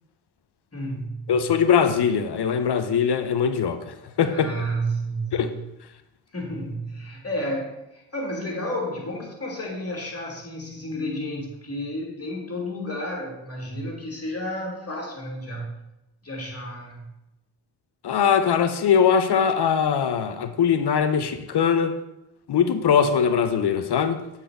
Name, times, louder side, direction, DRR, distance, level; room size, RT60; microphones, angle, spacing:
voice 1, 0.7-1.3 4.3-5.6 6.3-15.7 16.2-17.1, equal, 30° left, 2.9 m, -31 dB
voice 2, 1.3-4.5 5.3-5.5 18.0-21.9 22.5-24.2, left 7 dB, 55° left, 0.8 m, -21 dB
7.7 x 4.5 x 5.1 m
supercardioid pair, 40°, 48 cm